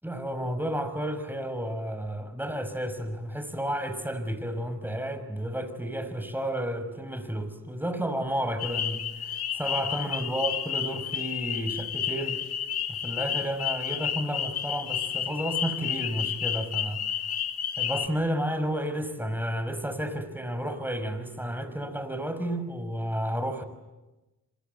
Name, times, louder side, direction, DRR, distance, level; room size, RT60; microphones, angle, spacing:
voice 1, 0.0-12.4 13.0-17.0 17.8-23.6, equal, 5° right, 9 dB, 5.8 m, -31 dB
sound 1, 8.6-18.1, left 9 dB, 75° left, 2.1 m, -31 dB
27.0 x 25.5 x 8.2 m, 1.1 s
cardioid pair, 60°, 38 cm